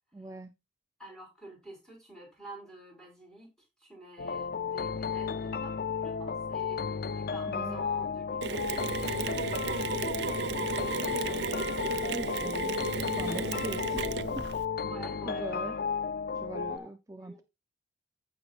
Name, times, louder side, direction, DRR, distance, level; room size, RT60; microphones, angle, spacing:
voice 1, 0.1-0.5 7.5-7.9 11.9-12.9 13.2-14.0 14.4-14.5 15.3-15.7 16.3-17.4, right 1 dB, 15° right, 0.5 m, -41 dB
voice 2, 1.0-3.5 3.8-11.2 14.8-15.8 16.6-16.9 17.2-17.4, right 1 dB, 5° left, 5.2 m, -49 dB
sound 1, 4.2-16.8, left 6 dB, 50° left, 0.4 m, -33 dB
Mechanisms, 8.4-14.6, right 4 dB, 60° right, 0.7 m, -34 dB
15.0 x 6.1 x 2.4 m
head